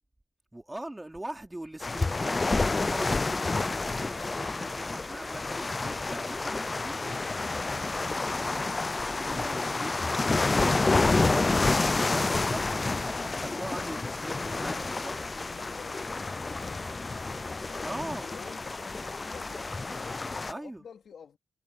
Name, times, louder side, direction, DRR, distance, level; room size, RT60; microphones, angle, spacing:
voice 1, 0.5-7.3 8.1-8.8 9.2-10.0 10.5-15.2 17.8-18.3 20.5-20.9, right 1 dB, 15° right, 4.6 m, -40 dB
sound 1, 1.8-20.5, left 3 dB, 30° left, 0.4 m, -29 dB
voice 2, 15.3-21.4, left 7 dB, 75° left, 3.1 m, -50 dB
cardioid pair, 90°, 0 cm